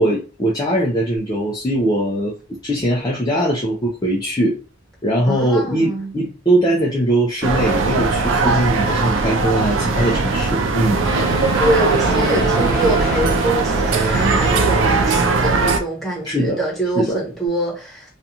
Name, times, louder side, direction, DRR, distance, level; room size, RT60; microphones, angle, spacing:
voice 1, 0.0-2.3 2.6-4.6 5.0-11.0 16.2-16.6 17.0-17.2, right 1 dB, 20° left, 0.4 m, -20 dB
voice 2, 5.2-6.1 11.6-18.2, right 1 dB, ahead, 1.2 m, -24 dB
sound 1, 7.4-15.8, right 3 dB, 70° right, 0.4 m, -19 dB
sound 2, 11.0-15.7, right 2 dB, 15° right, 1.0 m, -25 dB
2.5 x 2.3 x 2.8 m
head